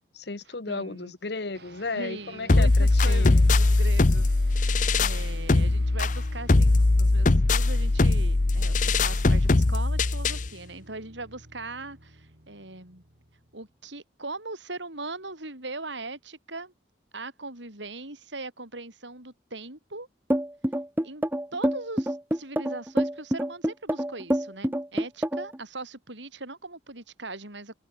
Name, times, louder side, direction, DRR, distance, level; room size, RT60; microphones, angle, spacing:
voice 1, 0.1-3.5, left 3 dB, 60° left, 1.1 m, -34 dB
voice 2, 0.7-1.1 1.9-13.0 13.5-16.7 17.1-20.1 21.0-21.2 21.5-27.8, right 2 dB, 80° right, 7.0 m, -40 dB
sound 1, 1.5-13.8, right 1 dB, 60° right, 5.5 m, -49 dB
sound 2, 2.5-10.5, left 2 dB, 45° left, 0.7 m, -21 dB
sound 3, 20.3-25.6, equal, 10° right, 1.0 m, -26 dB
head